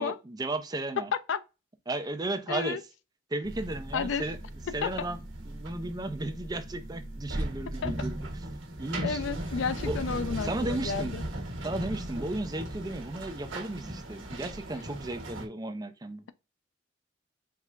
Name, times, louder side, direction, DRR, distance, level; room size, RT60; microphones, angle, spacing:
voice 1, 0.0-1.1 1.9-2.8 3.3-4.4 4.7-8.2 8.8-9.2 9.8-10.0 10.4-11.2 11.6-16.2, right 2 dB, 20° right, 0.5 m, -34 dB
voice 2, 2.5-2.8 3.9-4.2 4.8-4.9 7.8-7.9 9.0-11.2, left 6 dB, 70° left, 0.4 m, -31 dB
sound 1, 3.4-15.5, right 1 dB, 85° right, 1.1 m, -37 dB
4.7 x 3.3 x 2.4 m
head